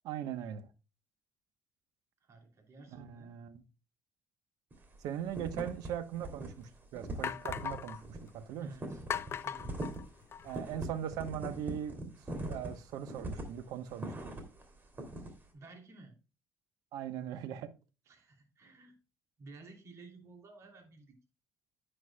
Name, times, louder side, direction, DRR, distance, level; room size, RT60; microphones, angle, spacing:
voice 1, 0.0-0.7 2.9-3.6 5.0-8.7 10.4-14.3 16.9-17.7, right 10 dB, 90° right, 1.0 m, -40 dB
voice 2, 2.2-3.3 8.6-9.0 9.3-9.8 15.5-16.2 18.1-19.0 19.4-21.2, right 2 dB, 50° right, 2.9 m, -53 dB
sound 1, 4.7-5.0 5.3-5.9 6.1-6.5 6.7-14.6 15.0-15.3, right 1 dB, 30° right, 2.8 m, -41 dB
sound 2, 5.9-6.0 6.6-6.7 7.2-8.0 9.1-10.6, left 8 dB, 45° left, 0.5 m, -38 dB
10.0 x 9.1 x 2.2 m
cardioid pair, 110°, 6 cm